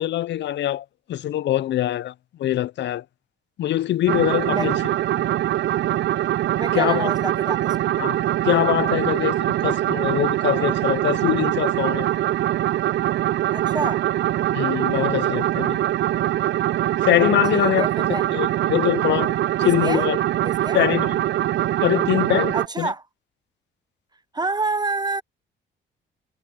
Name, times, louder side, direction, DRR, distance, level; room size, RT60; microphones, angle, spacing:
voice 1, 0.0-2.1 2.4-3.0 3.6-4.8 6.7-7.1 8.0-8.2 8.4-12.1 14.5-15.8 17.0-20.2 20.7-21.2 21.8-22.9, left 13 dB, 65° left, 0.5 m, -23 dB
sound 1, 4.1-22.7, right 13 dB, 65° right, 0.5 m, -23 dB
voice 2, 6.6-7.8 13.5-14.1 17.5-18.2 19.6-20.1 20.4-20.8 22.5-23.0 24.3-25.2, right 3 dB, 20° right, 0.7 m, -27 dB
cardioid pair, 90°, 20 cm